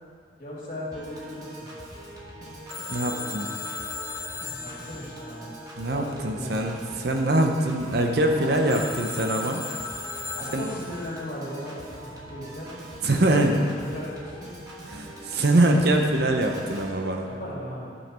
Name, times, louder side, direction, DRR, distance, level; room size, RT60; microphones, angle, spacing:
voice 1, 0.4-1.7 4.4-5.5 5.9-6.7 7.0-7.2 8.4-8.7 10.3-12.7 13.3-14.4 17.2-17.9, left 1 dB, 45° left, -6 dB, 2.7 m, -37 dB
Piano / Organ, 0.9-16.9, right 1 dB, 20° right, 1.3 m, -42 dB
Telephone, 2.7-6.3 8.7-11.2, left 4 dB, 15° left, 0.5 m, -37 dB
voice 2, 2.9-3.5 5.8-9.6 10.5-10.7 13.0-13.6 14.8-17.3, right 1 dB, 55° right, 3 dB, 0.8 m, -23 dB
12.5 x 5.7 x 4.3 m, 2.1 s
head